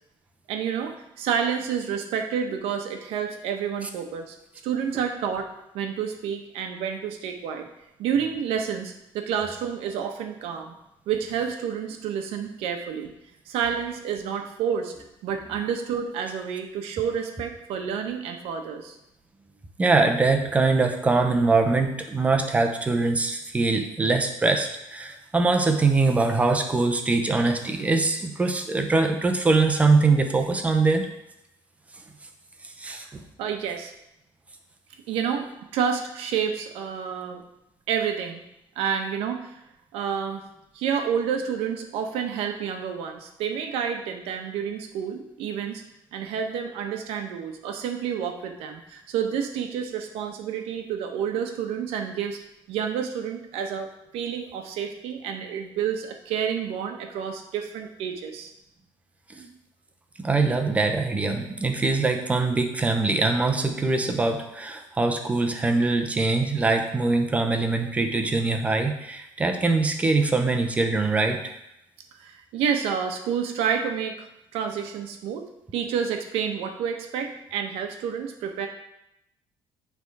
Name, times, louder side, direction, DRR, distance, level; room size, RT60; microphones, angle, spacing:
voice 1, 0.5-4.4 4.6-5.5 5.7-7.7 8.0-10.8 11.1-13.1 13.5-14.9 15.2-18.9 33.0-33.1 33.4-33.9 35.1-37.4 37.9-38.4 38.8-39.6 39.9-40.4 40.7-45.8 46.1-52.4 52.7-58.5 72.2-74.3 74.5-75.4 75.7-78.7, right 7 dB, 85° right, 4 dB, 0.9 m, -29 dB
voice 2, 19.8-31.1 32.8-33.2 59.3-59.5 60.2-71.4, right 3 dB, 15° right, 5 dB, 0.7 m, -23 dB
9.0 x 3.5 x 4.7 m, 0.84 s
cardioid pair, 155°, 10 cm